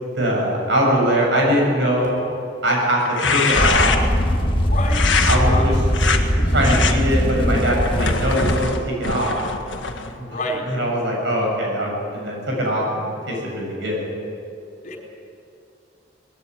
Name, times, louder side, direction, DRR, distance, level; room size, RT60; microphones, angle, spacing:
voice 1, 0.1-2.2 2.6-3.9 5.2-5.7 6.4-9.3 9.9-10.4 10.7-14.0, equal, 70° right, -1 dB, 7.7 m, -22 dB
sound 1, 3.0-4.2 4.9-5.4 5.9-6.2 6.6-6.9 7.5-10.1, left 5 dB, 85° left, 1.8 m, -23 dB
sound 2, 3.5-8.6, equal, 30° left, 1.7 m, -20 dB
voice 2, 4.6-5.6 10.3-10.6 14.8-15.0, left 1 dB, 45° left, 0 dB, 4.7 m, -28 dB
20.0 x 16.5 x 9.9 m, 2.6 s
head